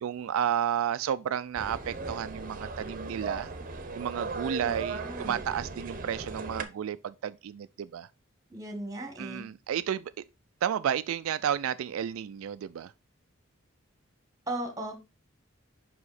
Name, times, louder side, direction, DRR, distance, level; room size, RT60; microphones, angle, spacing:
voice 1, 0.0-3.5 3.9-8.1 9.2-10.1 10.6-12.9, right 9 dB, 85° right, 0.3 m, -32 dB
sound 1, 1.6-6.6, right 3 dB, 40° right, 0.8 m, -37 dB
voice 2, 4.6-5.4 8.5-9.5 14.5-14.9, right 1 dB, 15° right, 1.5 m, -37 dB
5.6 x 4.8 x 4.1 m
head